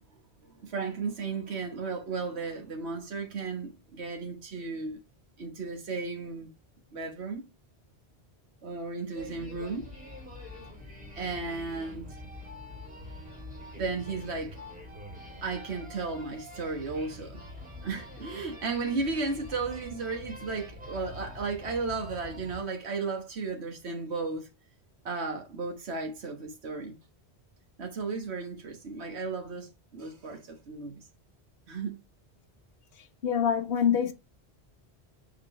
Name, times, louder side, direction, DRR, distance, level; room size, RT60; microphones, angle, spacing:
voice 1, 0.6-5.0 5.4-6.5 6.9-7.4 8.6-9.9 11.1-12.1 13.7-14.6 15.4-17.4 17.8-24.5 25.0-26.9 27.8-31.0 31.7-32.0, right 4 dB, 75° right, 1.6 m, -34 dB
sound 1, 9.1-22.6, left 1 dB, 5° right, 3.0 m, -45 dB
voice 2, 33.2-34.1, left 8 dB, 65° left, 1.2 m, -25 dB
7.2 x 4.1 x 3.1 m
omnidirectional pair, 1.1 m